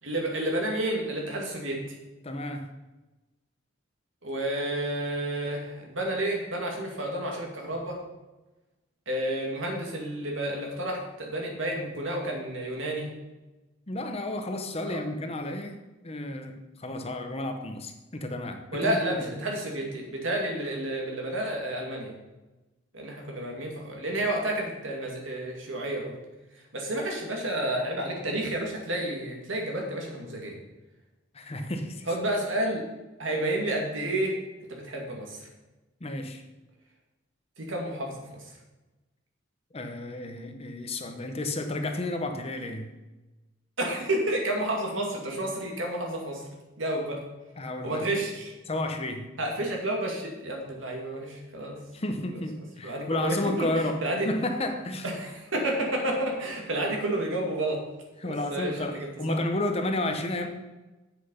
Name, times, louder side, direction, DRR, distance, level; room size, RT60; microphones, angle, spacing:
voice 1, 0.0-1.8 4.2-8.0 9.1-13.1 14.8-15.0 18.7-22.1 22.9-26.2 26.7-30.6 32.1-32.8 33.2-34.4 34.7-35.5 37.6-38.4 43.8-46.5 46.8-47.2 47.8-48.5 49.4-51.8 52.8-54.3 55.0-57.8 58.2-59.3, right 1 dB, 80° right, 0 dB, 2.3 m, -30 dB
voice 2, 2.2-2.7 13.9-19.2 31.3-32.1 36.0-36.4 39.7-42.9 47.6-48.0 48.7-49.3 51.9-55.1 58.2-60.5, left 1 dB, 30° left, 6 dB, 0.8 m, -32 dB
7.8 x 6.6 x 5.6 m, 1.1 s
head